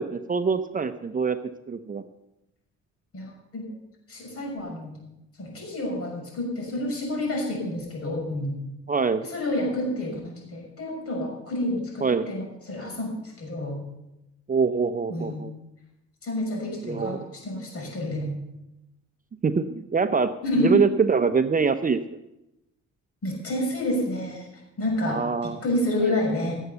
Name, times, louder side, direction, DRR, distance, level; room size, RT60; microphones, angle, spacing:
voice 1, 0.0-1.4 1.7-2.0 8.9-9.3 12.0-12.4 14.5-15.5 16.8-17.3 19.4-20.3 20.6-22.0 25.1-25.6 26.1-26.2, right 5 dB, 25° right, 9 dB, 0.7 m, -24 dB
voice 2, 3.1-3.7 4.1-4.9 5.4-8.6 9.2-13.8 15.1-15.4 16.2-18.3 20.4-20.8 23.2-24.5 24.8-25.2 25.6-26.5, left 1 dB, 50° left, 0 dB, 6.4 m, -29 dB
16.5 x 8.2 x 6.9 m, 0.91 s
cardioid pair, 90°, 30 cm